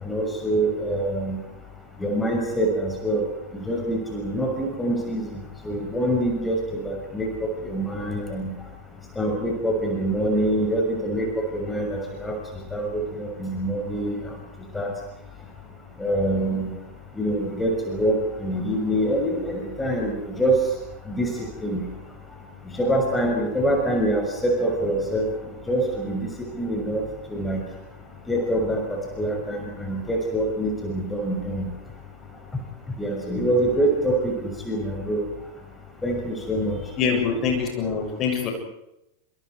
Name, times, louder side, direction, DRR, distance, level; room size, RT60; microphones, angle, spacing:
voice 1, 0.0-1.4 2.0-3.2 3.6-5.4 5.6-8.5 9.2-11.3 11.5-12.3 12.7-14.2 14.7-14.9 16.0-16.7 17.2-20.6 21.1-21.3 21.6-21.8 22.8-25.3 25.7-26.3 26.5-27.0 27.3-27.6 28.3-31.7 33.0-34.3 34.6-35.2 36.0-36.8, right 1 dB, 10° left, 1 dB, 6.5 m, -25 dB
voice 2, 37.0-38.5, left 6 dB, 35° left, 2 dB, 7.4 m, -24 dB
28.0 x 27.0 x 4.9 m, 0.85 s
figure-of-eight pair, 90°, 0 cm